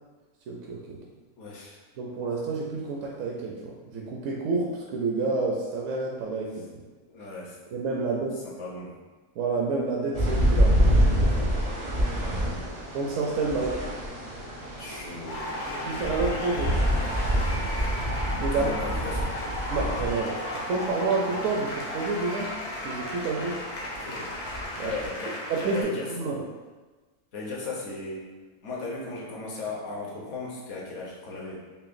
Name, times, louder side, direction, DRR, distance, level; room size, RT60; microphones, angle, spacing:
voice 1, 0.5-1.0 2.0-6.6 7.7-8.5 9.4-11.5 12.9-13.9 15.7-17.0 18.3-18.7 19.7-22.5 22.8-23.6 24.8-24.9 25.5-26.4, right 3 dB, 70° right, -2 dB, 0.8 m, -29 dB
voice 2, 1.4-1.8 6.9-7.6 8.4-8.9 12.1-12.6 14.8-16.0 18.5-19.3 23.9-24.4 24.8-26.1 27.3-28.3 28.6-31.6, left 3 dB, 60° left, -3 dB, 1.1 m, -37 dB
sound 1, 10.1-25.1, equal, 40° right, 0.5 m, -28 dB
sound 2, 15.3-25.8, left 1 dB, 85° left, 1.2 m, -35 dB
sound 3, 17.9-25.8, right 2 dB, 90° right, 1.3 m, -45 dB
5.5 x 2.2 x 2.5 m, 1.3 s
omnidirectional pair, 1.6 m